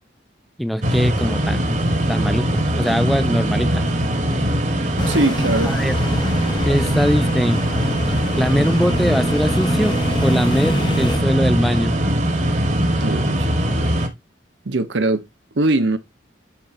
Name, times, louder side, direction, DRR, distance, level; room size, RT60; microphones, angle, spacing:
voice 1, 0.6-1.8 2.1-3.8 5.6-5.9 6.6-7.6 8.4-12.0, equal, ahead, 0.3 m, -21 dB
sound 1, 0.8-14.1, right 1 dB, 40° right, 1.2 m, -21 dB
sound 2, 5.0-11.2, left 1 dB, 25° left, 0.7 m, -28 dB
voice 2, 5.1-5.7 13.0-13.5 14.7-15.2 15.5-16.0, right 2 dB, 75° right, 0.8 m, -20 dB
10.5 x 4.3 x 2.5 m
head